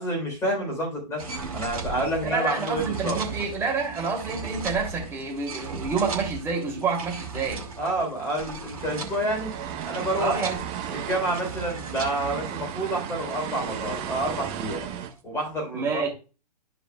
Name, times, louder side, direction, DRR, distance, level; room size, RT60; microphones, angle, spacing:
voice 1, 0.0-3.2 7.8-9.5 9.8-10.4 10.9-14.9 15.2-16.0, right 1 dB, 10° left, 3.8 m, -29 dB
sound 1, 1.2-15.1, right 4 dB, 55° right, 2.1 m, -38 dB
voice 2, 2.2-7.7 10.2-10.6 15.7-16.1, right 5 dB, 10° right, 2.9 m, -28 dB
sound 2, 8.8-15.1, right 9 dB, 25° right, 1.0 m, -35 dB
13.5 x 5.1 x 2.4 m
figure-of-eight pair, 115°, 21 cm